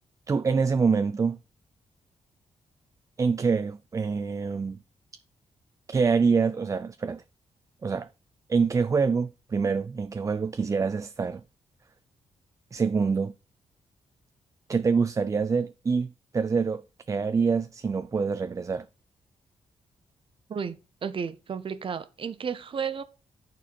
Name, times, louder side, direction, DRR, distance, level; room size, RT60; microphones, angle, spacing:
voice 1, 0.3-1.4 3.2-4.8 5.9-7.2 7.8-8.1 8.5-11.4 12.7-13.3 14.7-18.9, right 5 dB, 30° right, 0.4 m, -26 dB
voice 2, 21.0-23.0, right 6 dB, 50° right, 0.8 m, -32 dB
9.8 x 4.5 x 4.3 m
cardioid pair, 95°, 12 cm